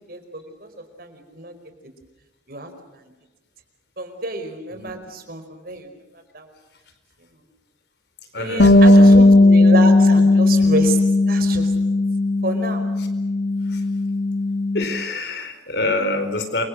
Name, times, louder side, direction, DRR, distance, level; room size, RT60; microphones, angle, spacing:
voice 1, 0.1-0.7 1.0-1.5 2.5-3.1 4.0-5.9 6.3-6.5 7.3-7.4 8.4-11.0 11.3-11.7 12.4-12.8, right 2 dB, 50° right, 7 dB, 4.9 m, -29 dB
voice 2, 8.3-9.3 13.0-13.1 13.7-13.8 14.7-16.6, left 2 dB, 60° left, 8 dB, 4.7 m, -26 dB
Bass guitar, 8.6-14.8, left 2 dB, 75° left, 2.0 m, -15 dB
28.5 x 25.5 x 6.5 m, 1.1 s
head